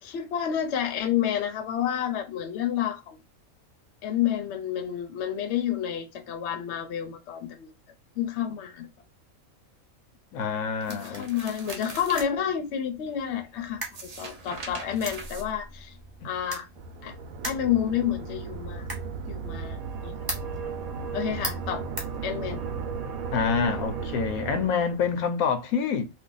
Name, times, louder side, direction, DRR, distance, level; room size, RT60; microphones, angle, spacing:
voice 1, 0.0-3.2 4.0-7.7 8.2-8.9 10.9-15.9 16.2-16.7 17.0-17.1 17.4-18.9 19.3-20.2 21.1-21.8 22.2-22.6, left 9 dB, 60° left, 0.8 m, -29 dB
voice 2, 10.3-11.3 23.3-26.1, left 6 dB, 85° left, 1.0 m, -27 dB
sound 1, 10.8-12.3 13.8-16.0, right 3 dB, 60° right, 0.4 m, -41 dB
sound 2, 10.9-22.8, right 1 dB, 20° right, 0.9 m, -42 dB
sound 3, 16.8-25.3, right 5 dB, 85° right, 1.0 m, -35 dB
2.6 x 2.3 x 3.8 m
omnidirectional pair, 1.4 m